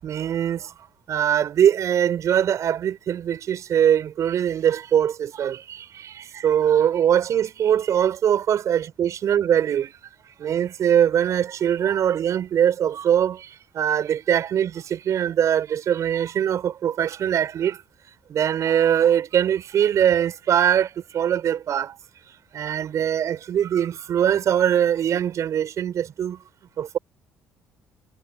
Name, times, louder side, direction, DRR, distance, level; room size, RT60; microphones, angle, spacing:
voice 1, 0.0-0.7 1.1-9.9 10.4-17.8 18.3-22.0 22.5-26.4 26.8-27.0, right 9 dB, 60° right, 6.9 m, -22 dB
cardioid pair, 80°, 6 cm